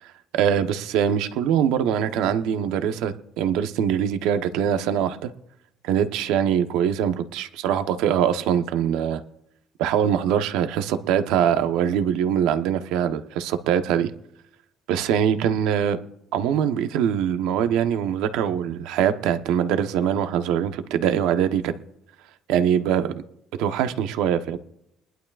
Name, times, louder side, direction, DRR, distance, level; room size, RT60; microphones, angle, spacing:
voice 1, 0.0-5.3 5.8-9.2 9.8-14.1 14.9-16.0 16.3-21.7 22.5-23.1 23.6-24.6, right 9 dB, 85° right, 9 dB, 1.0 m, -23 dB
22.5 x 11.5 x 2.4 m, 0.78 s
cardioid pair, 150°, 0 cm